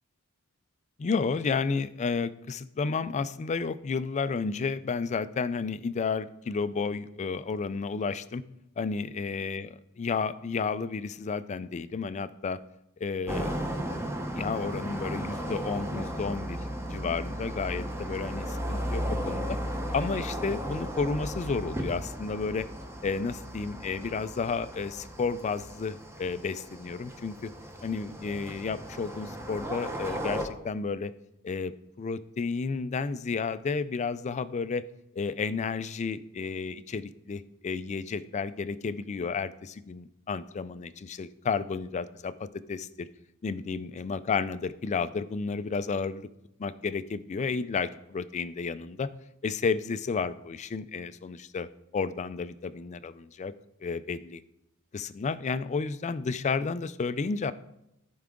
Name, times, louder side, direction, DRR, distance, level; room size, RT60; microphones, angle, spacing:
voice 1, 1.0-8.4 8.8-12.6 13.0-13.5 14.3-16.6 16.9-19.6 19.9-22.7 23.0-27.5 27.8-31.1 31.4-31.7 32.0-34.9 35.2-43.1 43.4-46.2 46.6-49.1 49.4-51.7 51.9-53.5 53.8-54.4 54.9-57.5, left 5 dB, 30° left, 14 dB, 0.3 m, -32 dB
sound 1, 13.3-30.4, equal, 10° right, 0.8 m, -35 dB
14.0 x 4.7 x 3.7 m, 0.83 s
head